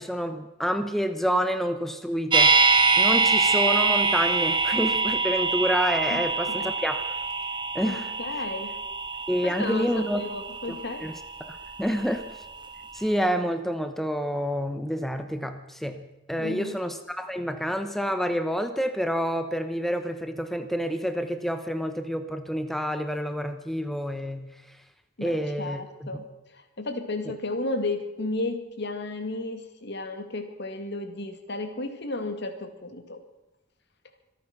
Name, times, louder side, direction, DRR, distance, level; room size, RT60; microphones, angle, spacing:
voice 1, 0.0-7.0 7.7-8.1 9.3-10.2 10.7-11.1 11.5-12.2 12.9-24.5 25.2-26.1, equal, ahead, 8 dB, 0.9 m, -28 dB
sound 1, 2.3-12.4 12.6-12.7, right 4 dB, 25° right, 1.8 m, -24 dB
voice 2, 7.8-8.7 9.4-11.1 16.4-16.8 25.2-26.3 26.5-33.2, left 2 dB, 65° left, 6 dB, 2.2 m, -33 dB
25.5 x 9.1 x 6.0 m, 0.97 s
head